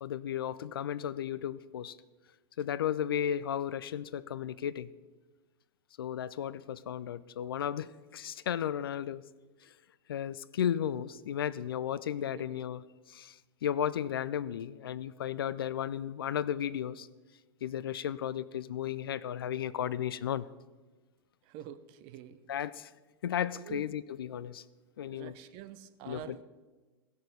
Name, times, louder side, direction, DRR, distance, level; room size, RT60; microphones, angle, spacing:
voice 1, 0.0-2.0 2.6-4.9 6.0-9.2 10.1-12.8 13.1-13.4 13.6-17.1 17.6-20.4 22.5-22.9 23.2-24.6 25.0-25.3 26.1-26.4, left 9 dB, 65° left, 19 dB, 0.4 m, -34 dB
voice 2, 12.3-12.6 21.4-22.4 23.5-23.9 25.1-26.4, right 12 dB, 40° right, 12 dB, 0.7 m, -47 dB
16.5 x 6.4 x 5.2 m, 1.2 s
figure-of-eight pair, 90°, 13 cm